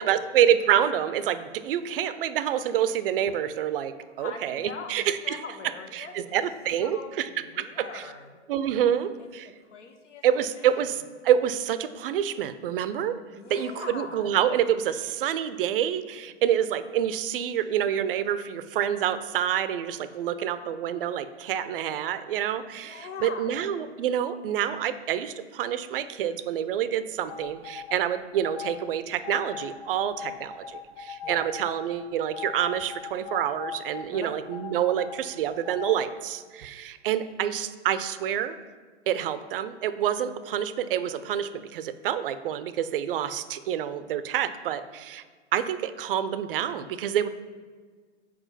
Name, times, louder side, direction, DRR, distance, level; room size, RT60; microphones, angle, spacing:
voice 1, 0.0-5.4 5.9-7.3 7.6-8.0 8.5-9.5 10.2-13.1 13.5-38.5 39.1-45.2 45.5-47.3, right 10 dB, 50° right, 12 dB, 0.5 m, -27 dB
voice 2, 4.0-6.3 6.8-8.3 8.7-8.8 9.2-9.3 9.7-10.2 10.6-10.9 13.3-14.3 22.7-23.7 31.2-31.5 34.1-34.4, left 5 dB, 80° left, 5 dB, 0.9 m, -42 dB
sound 1, 27.3-28.0 28.4-28.8 29.2-31.8 32.3-34.0 34.5-35.2 35.7-36.0, left 8 dB, 5° left, 0.6 m, -38 dB
5.0 x 4.7 x 5.5 m, 1.5 s
hypercardioid pair, 125°, 36 cm